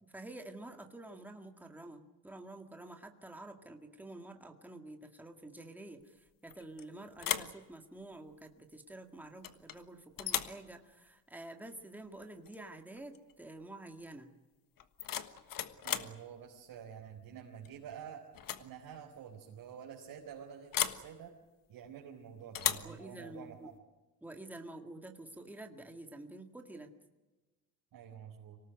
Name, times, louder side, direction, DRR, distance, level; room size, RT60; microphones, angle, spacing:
voice 1, 0.0-6.2 6.4-14.3 22.8-23.7 24.2-26.9, right 2 dB, 5° right, 4 dB, 2.0 m, -49 dB
sound 1, 6.5-6.8 7.2-7.6 9.4-9.8 10.2-10.6 12.5-12.6 13.0-13.3 14.8-16.2 17.6-17.9 18.3-18.7 18.9-19.0 20.7-21.1 22.5-22.9, left 10 dB, 55° left, 1.4 m, -36 dB
voice 2, 15.8-18.2 18.6-21.3 21.7-23.7 27.9-28.6, right 8 dB, 65° right, -2 dB, 4.4 m, -49 dB
25.5 x 18.5 x 9.4 m, 1.1 s
cardioid pair, 155°, 39 cm